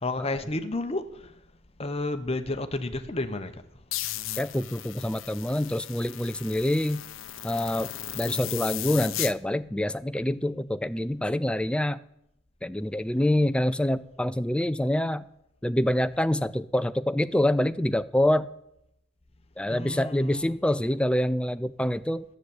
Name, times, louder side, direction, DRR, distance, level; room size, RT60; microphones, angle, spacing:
voice 1, 0.0-1.3 1.8-3.6 19.7-20.5, left 2 dB, 30° left, 0.9 m, -31 dB
sound 1, 3.9-9.3, left 13 dB, 75° left, 0.6 m, -36 dB
voice 2, 4.4-7.1 7.4-12.0 12.6-15.2 15.6-18.5 19.6-22.2, left 1 dB, 5° left, 0.4 m, -26 dB
10.5 x 8.0 x 8.5 m
head